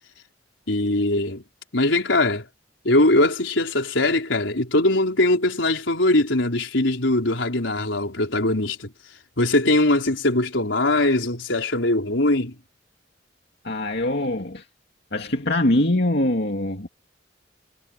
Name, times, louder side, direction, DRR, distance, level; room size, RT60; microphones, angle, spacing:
voice 1, 0.7-1.4 1.7-2.5 2.8-8.9 9.4-12.6, left 2 dB, 85° left, 4.3 m, -21 dB
voice 2, 13.6-14.6 15.1-16.9, left 1 dB, 60° left, 2.4 m, -23 dB
head